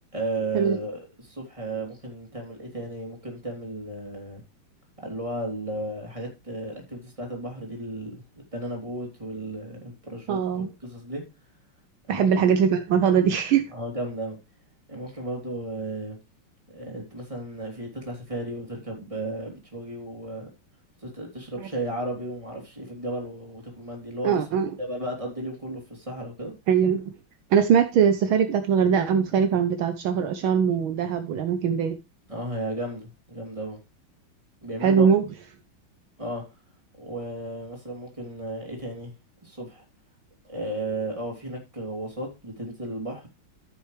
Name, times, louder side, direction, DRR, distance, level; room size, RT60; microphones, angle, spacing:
voice 1, 0.1-4.4 5.0-8.2 8.5-11.2 12.1-12.5 13.7-14.4 14.9-16.2 16.7-20.5 21.0-24.4 24.8-26.5 32.3-33.8 34.6-35.1 36.2-36.4 37.0-39.1 39.4-39.8 40.4-43.3, right 1 dB, 15° right, 3.0 m, -34 dB
voice 2, 10.3-10.7 12.1-13.7 24.2-24.7 26.7-27.1 27.5-32.0 34.8-35.2, right 7 dB, 75° right, 1.6 m, -21 dB
14.5 x 6.3 x 3.2 m
omnidirectional pair, 2.4 m